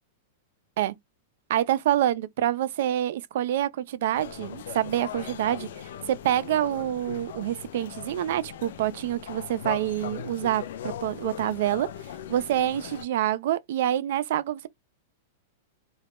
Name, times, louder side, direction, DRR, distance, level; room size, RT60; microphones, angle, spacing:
voice 1, 1.5-5.7 6.1-11.9 12.3-14.7, right 12 dB, 60° right, 0.3 m, -26 dB
sound 1, 4.1-13.1, left 9 dB, 70° left, 0.3 m, -39 dB
2.2 x 2.0 x 2.9 m
supercardioid pair, 165°, 0 cm